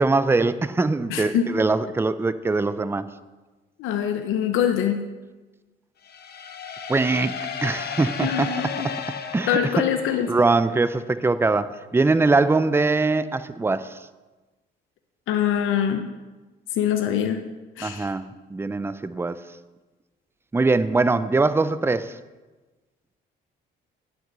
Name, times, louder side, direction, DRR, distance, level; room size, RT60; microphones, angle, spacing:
voice 1, 0.0-3.1 6.9-8.5 8.8-9.0 9.3-9.6 10.3-14.0 17.8-19.4 20.5-22.2, right 3 dB, 10° right, 14 dB, 0.5 m, -22 dB
voice 2, 1.1-1.5 3.8-5.1 8.2-8.9 9.5-10.3 15.3-16.1 16.7-17.4 17.8-18.1, left 9 dB, 90° left, 6 dB, 0.7 m, -24 dB
sound 1, 6.0-10.8, left 6 dB, 55° left, 0.9 m, -34 dB
9.8 x 6.1 x 6.1 m, 1.2 s
cardioid pair, 90°, 20 cm